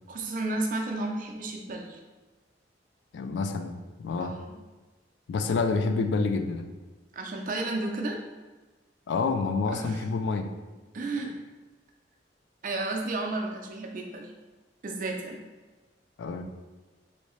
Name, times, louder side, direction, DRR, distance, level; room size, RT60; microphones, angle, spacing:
voice 1, 0.1-2.0 4.2-4.6 7.1-8.2 9.7-10.0 10.9-11.3 12.6-14.3 14.8-15.4, right 2 dB, 45° right, 2 dB, 0.5 m, -32 dB
voice 2, 3.1-4.3 5.3-6.7 9.1-10.5 16.2-16.4, left 4 dB, 70° left, 7 dB, 0.3 m, -28 dB
3.1 x 2.7 x 3.1 m, 1.2 s
head